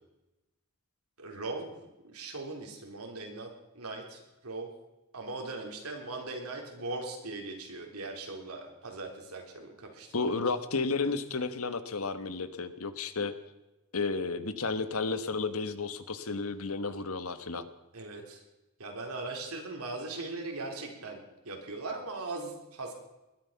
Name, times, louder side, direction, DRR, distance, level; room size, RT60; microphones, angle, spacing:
voice 1, 1.2-1.7 2.0-4.7 5.1-10.4 17.9-18.4 18.8-22.9, right 3 dB, 85° right, 2 dB, 3.8 m, -39 dB
voice 2, 10.1-13.4 13.9-17.7, left 4 dB, 75° left, 11 dB, 1.3 m, -32 dB
20.5 x 12.0 x 5.8 m, 1.0 s
head